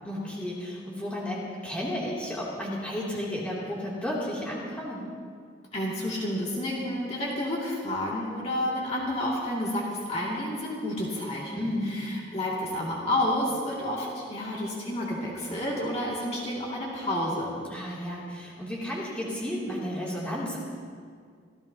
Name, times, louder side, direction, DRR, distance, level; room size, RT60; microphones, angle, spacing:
voice 1, 0.0-5.0 11.5-12.1 17.7-20.6, left 1 dB, 5° left, -7 dB, 2.8 m, -33 dB
voice 2, 5.7-17.6, left 1 dB, 30° left, -5 dB, 2.4 m, -30 dB
26.5 x 15.0 x 2.9 m, 2.1 s
head